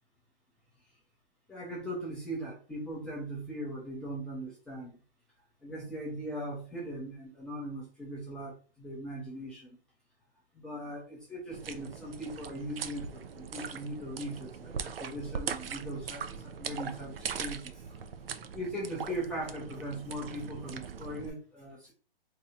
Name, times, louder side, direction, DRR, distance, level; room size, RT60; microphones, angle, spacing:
voice 1, 1.5-5.0 5.6-9.8 10.5-18.0 18.5-21.9, right 1 dB, 5° left, -5 dB, 0.5 m, -39 dB
sound 1, 11.5-21.3, right 6 dB, 80° right, 0.6 m, -40 dB
2.9 x 2.3 x 4.2 m, 0.37 s
hypercardioid pair, 150°, 29 cm